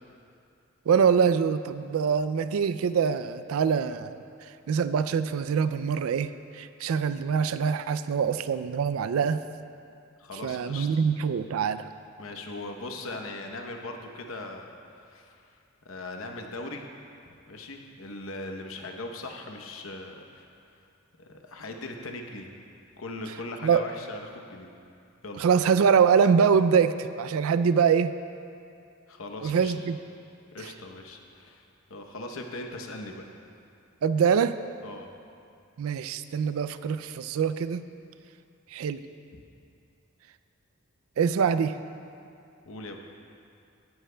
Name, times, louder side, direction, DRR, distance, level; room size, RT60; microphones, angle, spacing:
voice 1, 0.9-4.2 4.7-9.4 10.4-11.9 23.6-23.8 25.4-28.1 29.4-30.0 34.0-34.5 35.8-37.8 38.7-39.0 41.2-41.8, right 6 dB, 75° right, 12 dB, 0.3 m, -24 dB
voice 2, 10.2-10.9 12.2-14.7 15.0-15.6 15.8-16.8 17.2-20.5 21.2-22.5 23.0-24.7 25.2-25.4 29.1-29.7 30.5-33.2 34.8-35.1 39.3-39.4 42.6-43.0, left 2 dB, 70° left, 3 dB, 0.9 m, -39 dB
16.0 x 10.5 x 2.2 m, 2.5 s
head